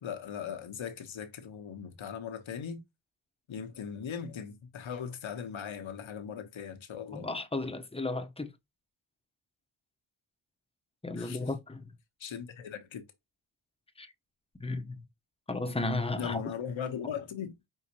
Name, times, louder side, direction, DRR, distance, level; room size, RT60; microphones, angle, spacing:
voice 1, 0.0-2.8 3.5-7.3 11.2-11.5 12.2-13.0 16.2-17.5, left 7 dB, 70° left, 1.1 m, -39 dB
voice 2, 7.1-8.5 11.0-11.9 14.0-14.1 14.6-15.0 15.5-16.4, left 2 dB, 10° left, 0.9 m, -34 dB
5.6 x 2.8 x 2.9 m
cardioid pair, 50°, 48 cm